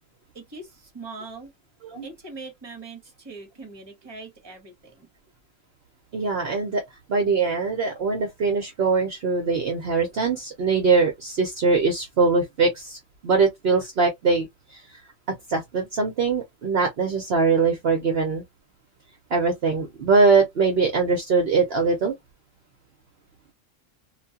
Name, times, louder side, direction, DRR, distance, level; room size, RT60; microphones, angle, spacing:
voice 1, 0.3-1.5 2.0-5.1, right 3 dB, 20° right, 1.0 m, -41 dB
voice 2, 6.1-6.8 7.1-15.0 15.5-18.4 19.3-22.1, right 4 dB, 55° right, 0.8 m, -22 dB
2.4 x 2.2 x 2.7 m
omnidirectional pair, 1.3 m